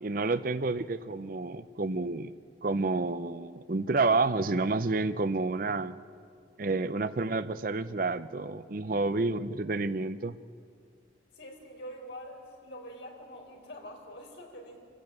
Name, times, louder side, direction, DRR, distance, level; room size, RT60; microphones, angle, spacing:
voice 1, 0.0-2.3 2.6-6.0 6.6-10.4, right 3 dB, 45° right, 14 dB, 0.6 m, -29 dB
voice 2, 11.3-14.8, equal, 70° left, 1 dB, 4.3 m, -45 dB
26.5 x 15.5 x 9.1 m, 2.3 s
head